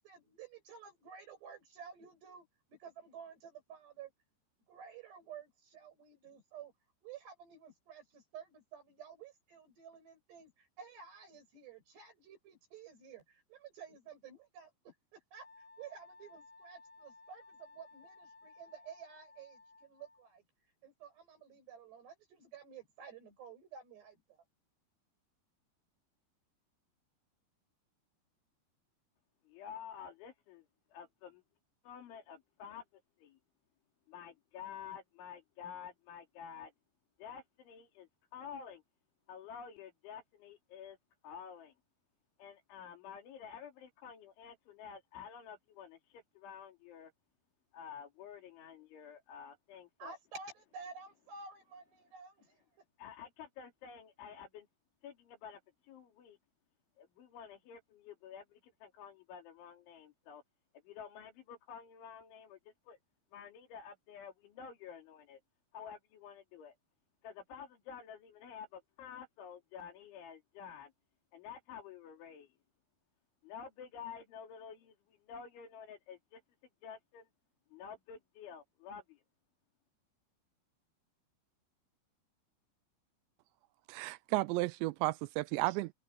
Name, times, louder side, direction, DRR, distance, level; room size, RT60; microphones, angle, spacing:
voice 1, 0.0-4.1 4.7-6.7 7.0-20.4 20.8-24.4 50.0-52.6, right 6 dB, 60° right, 9.0 m, -52 dB
Wind instrument woodwind instrument, 15.3-20.3, left 3 dB, 15° left, 6.0 m, -58 dB
voice 2, 29.5-30.7 30.9-31.4 31.8-32.8 33.2-33.4 34.1-36.7 37.2-38.8 39.3-41.0 41.2-41.7 42.4-47.1 47.7-50.2 53.0-54.7 55.0-56.4 57.0-60.4 60.9-63.0 63.3-65.4 65.7-66.7 67.2-70.9 71.3-72.6 73.4-76.4 76.8-77.3 77.7-79.2, left 7 dB, 80° left, 5.7 m, -50 dB
voice 3, 83.9-85.9, right 20 dB, 85° right, 2.6 m, -33 dB
omnidirectional pair, 5.3 m